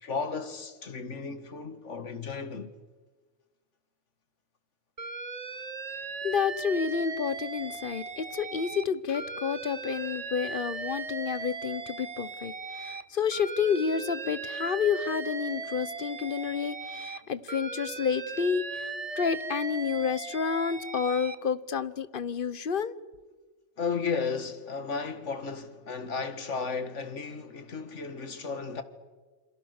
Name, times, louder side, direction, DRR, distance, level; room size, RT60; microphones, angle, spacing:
voice 1, 0.0-2.7 23.8-28.8, left 5 dB, 70° left, 2.0 m, -34 dB
Alarm, 5.0-8.8 9.1-13.0 13.3-17.2 17.5-21.4, right 4 dB, 30° right, 1.1 m, -38 dB
voice 2, 6.2-18.9 19.2-22.9, left 6 dB, 45° left, 1.1 m, -30 dB
28.0 x 27.0 x 6.6 m
omnidirectional pair, 1.3 m